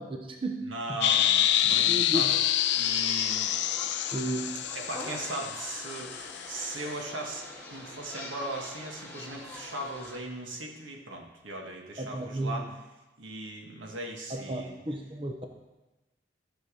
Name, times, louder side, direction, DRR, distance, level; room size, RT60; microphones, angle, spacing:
voice 1, 0.0-1.0 1.6-2.3 4.1-4.5 12.0-12.7 14.3-15.5, right 1 dB, 30° right, 3 dB, 0.7 m, -34 dB
voice 2, 0.7-2.4 2.7-3.5 4.7-7.4 7.7-12.6 13.2-14.8, right 2 dB, 85° right, 1 dB, 1.7 m, -38 dB
sound 1, 1.0-6.8, left 11 dB, 65° left, 0.4 m, -27 dB
sound 2, 2.5-10.2, left 2 dB, 10° left, 2.1 m, -44 dB
13.0 x 6.2 x 5.0 m, 1.1 s
head